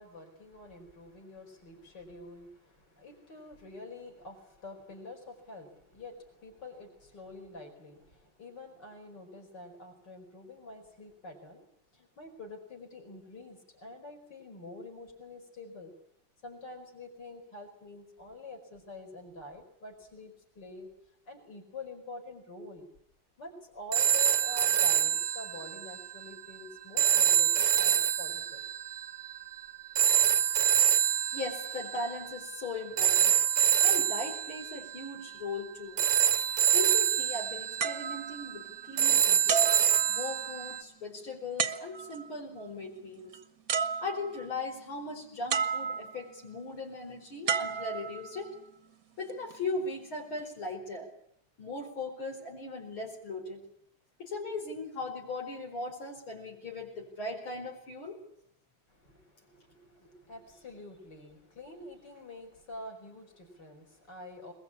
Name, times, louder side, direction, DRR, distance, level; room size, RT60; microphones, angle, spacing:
voice 1, 0.0-11.6 11.9-15.9 16.4-20.9 21.3-22.9 23.4-28.6 58.9-64.5, left 2 dB, 55° left, 1 dB, 5.5 m, -47 dB
sound 1, 23.9-40.8, right 9 dB, 85° right, 2.1 m, -27 dB
voice 2, 31.3-33.4 33.8-36.0 36.7-39.7 40.1-43.3 44.0-48.6 49.2-51.1 51.6-53.6 54.2-58.2, left 2 dB, 75° left, -1 dB, 5.4 m, -38 dB
sound 2, 37.8-39.0 39.5-40.6 41.6-42.3 43.3-43.4 43.7-44.5 45.5-46.3 47.5-48.6 49.3-49.5, right 6 dB, 50° right, 1.5 m, -33 dB
22.0 x 21.5 x 8.6 m, 0.69 s
omnidirectional pair, 2.3 m